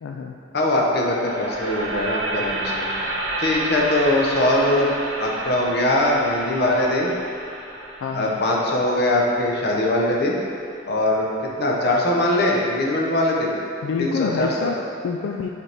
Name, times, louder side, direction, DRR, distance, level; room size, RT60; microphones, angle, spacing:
voice 1, 0.0-0.4 8.0-8.4 13.8-15.5, left 5 dB, 80° left, 2 dB, 0.3 m, -27 dB
voice 2, 0.5-2.9 3.4-4.9 5.2-7.1 8.1-10.4 10.9-11.3 11.6-13.5 14.0-14.7, left 1 dB, 55° left, -2 dB, 0.8 m, -21 dB
sound 1, 0.9-11.0, right 2 dB, 65° right, 0.9 m, -31 dB
6.8 x 4.3 x 3.4 m, 2.5 s
head